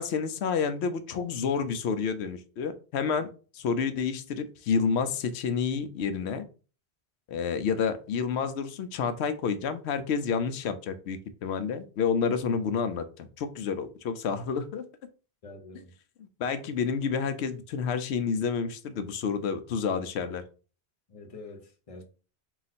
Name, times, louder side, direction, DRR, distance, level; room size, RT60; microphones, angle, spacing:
voice 1, 0.0-3.3 3.5-6.4 7.3-14.9 16.2-20.4, left 6 dB, 90° left, 0.9 m, -29 dB
voice 2, 15.4-15.9 21.1-22.0, left 2 dB, 35° left, 0.8 m, -46 dB
3.9 x 2.4 x 4.1 m
omnidirectional pair, 1.1 m